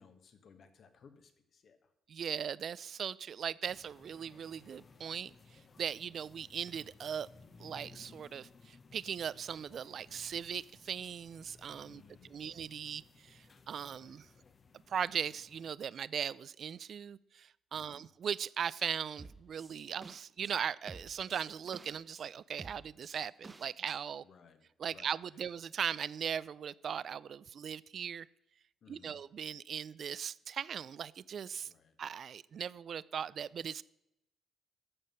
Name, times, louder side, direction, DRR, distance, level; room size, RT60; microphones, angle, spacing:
voice 1, 0.0-1.9 11.8-12.6 13.8-14.2 17.7-18.1 24.2-24.6 24.9-25.4 28.8-29.2 31.6-32.0, left 5 dB, 60° left, 8 dB, 1.5 m, -61 dB
voice 2, 2.1-5.3 5.8-7.3 7.6-14.3 14.9-24.2 24.8-28.3 28.9-31.7 32.0-33.8, right 8 dB, 55° right, 20 dB, 0.4 m, -39 dB
sound 1, 3.6-15.7, left 4 dB, 40° left, 0.9 m, -60 dB
sound 2, 19.2-20.5 20.9-22.2 22.6-24.0, right 3 dB, 20° right, 0.7 m, -52 dB
12.0 x 7.3 x 5.6 m, 0.82 s
cardioid pair, 90°, 0 cm